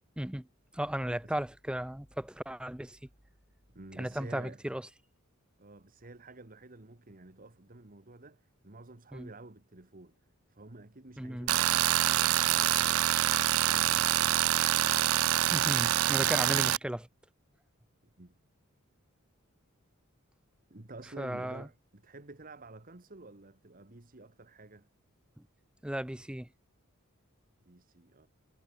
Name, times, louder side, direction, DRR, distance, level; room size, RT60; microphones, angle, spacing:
voice 1, 0.2-0.5 0.7-3.0 4.0-4.8 9.1-9.3 11.2-11.5 15.5-17.1 21.2-21.7 25.4-25.5 25.8-26.5, right 1 dB, 5° right, 0.6 m, -35 dB
voice 2, 3.7-4.6 5.6-10.1 10.5-14.4 18.2-18.4 20.7-24.9 27.6-28.3, right 2 dB, 40° right, 1.6 m, -50 dB
Tools, 11.5-16.8, right 13 dB, 70° right, 0.4 m, -26 dB
head